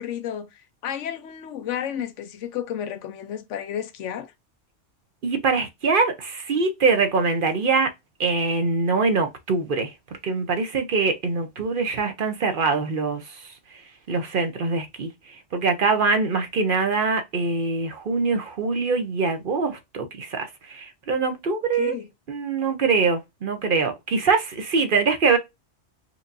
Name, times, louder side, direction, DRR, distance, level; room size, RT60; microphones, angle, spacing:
voice 1, 0.0-4.3 21.8-22.1, left 9 dB, 85° left, 1.0 m, -32 dB
voice 2, 5.2-7.9 8.2-9.9 10.2-21.9 22.3-25.4, right 4 dB, 55° right, 0.8 m, -23 dB
4.4 x 2.6 x 2.5 m
omnidirectional pair, 1.2 m